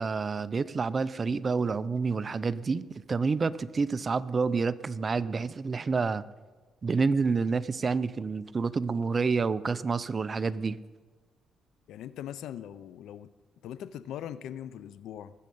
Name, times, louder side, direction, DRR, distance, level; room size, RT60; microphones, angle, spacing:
voice 1, 0.0-6.2 6.8-10.8, right 4 dB, 35° right, 16 dB, 0.5 m, -28 dB
voice 2, 11.9-13.3 13.6-15.3, left 10 dB, 80° left, 16 dB, 0.5 m, -40 dB
19.5 x 7.7 x 5.4 m, 1.3 s
cardioid pair, 90°, 0 cm